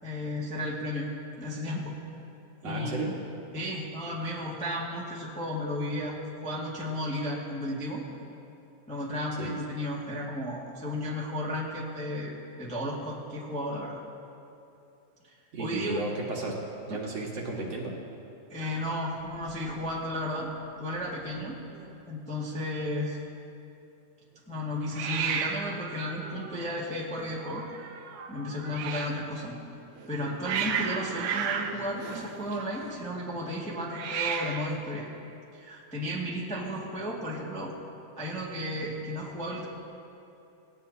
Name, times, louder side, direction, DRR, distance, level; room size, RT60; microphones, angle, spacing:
voice 1, 0.0-1.1 1.4-1.9 2.6-2.9 3.5-6.2 6.4-8.0 8.9-12.3 12.6-14.0 15.2-16.0 16.9-17.0 18.5-20.5 20.8-21.6 22.1-23.2 24.5-27.6 28.3-29.6 30.1-35.1 35.5-37.7 38.2-39.7, left 1 dB, 5° left, -5 dB, 1.3 m, -33 dB
voice 2, 2.6-3.1 9.4-9.5 15.5-16.6 16.9-17.9, right 2 dB, 60° right, -2 dB, 2.7 m, -33 dB
Hiss, 18.6-20.0 20.2-20.7 20.9-21.0 21.2-21.9 24.9-29.2 30.0-32.9 33.8-34.8, right 7 dB, 75° right, 2.1 m, -35 dB
19.5 x 18.0 x 2.9 m, 2.7 s
omnidirectional pair, 3.4 m